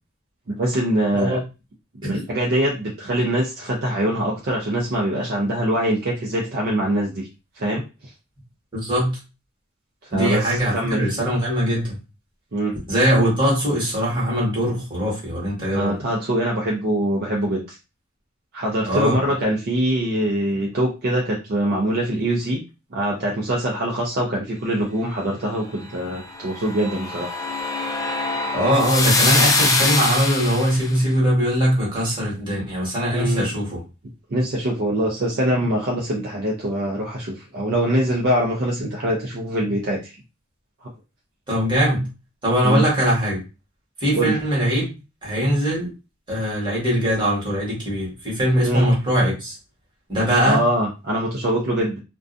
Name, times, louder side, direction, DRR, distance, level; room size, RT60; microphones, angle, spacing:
voice 1, 0.6-1.4 2.0-7.3 7.6-7.8 10.1-10.4 10.7-11.0 12.5-12.7 15.7-17.8 18.5-22.6 22.9-27.3 33.1-33.5 34.3-40.0 42.6-42.8 44.1-44.3 48.6-48.8 50.5-52.0, right 1 dB, 50° right, -3 dB, 0.5 m, -23 dB
voice 2, 8.7-9.1 10.1-12.0 12.9-16.0 18.9-19.2 28.5-33.8 41.5-42.1 42.4-43.4 44.0-44.9 45.2-45.9 46.3-49.6 50.1-50.6, equal, 25° right, -5 dB, 1.3 m, -21 dB
sound 1, 26.3-30.9, left 3 dB, 15° left, 0.4 m, -23 dB
2.4 x 2.2 x 2.5 m, 0.29 s
head